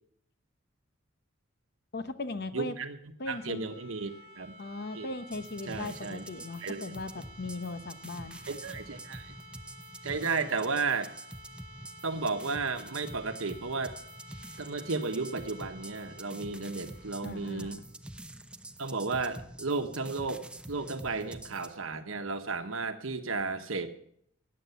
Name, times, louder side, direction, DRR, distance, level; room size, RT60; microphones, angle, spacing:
voice 1, 1.9-2.7 3.2-3.6 4.6-8.4 17.2-17.8, left 2 dB, 55° left, 11 dB, 0.9 m, -38 dB
voice 2, 2.5-3.0 3.3-4.5 4.9-5.1 5.7-6.2 6.6-7.0 8.5-9.3 10.0-11.1 12.0-13.9 14.6-17.8 18.8-23.9, right 4 dB, 85° right, 8 dB, 1.2 m, -33 dB
sound 1, 3.1-18.9, equal, 50° right, 4.2 m, -52 dB
sound 2, 5.3-21.8, right 1 dB, 5° right, 0.5 m, -47 dB
14.0 x 9.0 x 6.8 m, 0.70 s
head